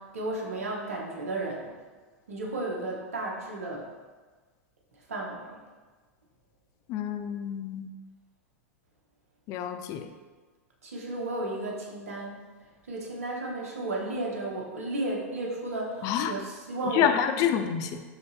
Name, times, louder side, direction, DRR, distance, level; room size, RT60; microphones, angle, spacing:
voice 1, 0.0-1.7 2.3-3.8 5.1-5.6 10.8-12.4 12.9-17.1, right 2 dB, 85° right, -2 dB, 2.1 m, -33 dB
voice 2, 6.9-7.9 9.5-10.1 16.0-16.4 16.8-18.0, left 9 dB, 45° left, 9 dB, 0.7 m, -28 dB
13.0 x 4.3 x 3.6 m, 1.4 s
hypercardioid pair, 105°, 8 cm